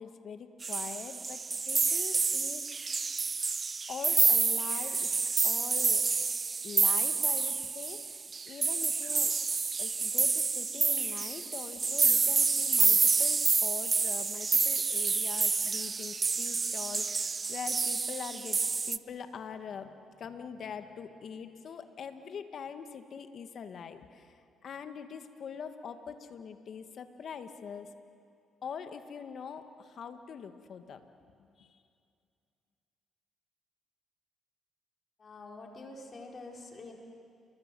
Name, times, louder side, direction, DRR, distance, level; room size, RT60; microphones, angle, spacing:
voice 1, 0.0-2.9 3.9-5.1 5.4-6.1 6.6-9.3 9.8-18.6 18.9-27.9 28.6-31.0 31.6-31.7, left 6 dB, 60° left, 8 dB, 1.8 m, -43 dB
sound 1, 0.6-19.0, right 4 dB, 35° right, 0.7 m, -28 dB
voice 2, 35.2-36.9, left 2 dB, 40° left, 1 dB, 4.5 m, -46 dB
29.5 x 23.5 x 7.7 m, 2.4 s
cardioid pair, 90°, 0 cm